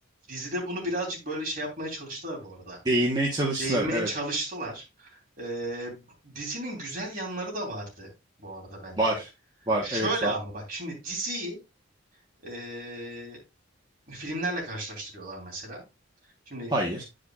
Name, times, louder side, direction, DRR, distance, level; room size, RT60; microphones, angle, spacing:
voice 1, 0.3-2.8 3.6-8.1 8.4-9.2 9.8-11.6 12.4-13.4 14.1-15.8 16.5-16.7, right 1 dB, 45° right, -1 dB, 3.3 m, -34 dB
voice 2, 2.8-4.1 9.0-9.3 9.7-10.3 16.7-17.0, right 1 dB, 20° right, -3 dB, 1.1 m, -26 dB
10.0 x 5.1 x 2.4 m, 0.24 s
head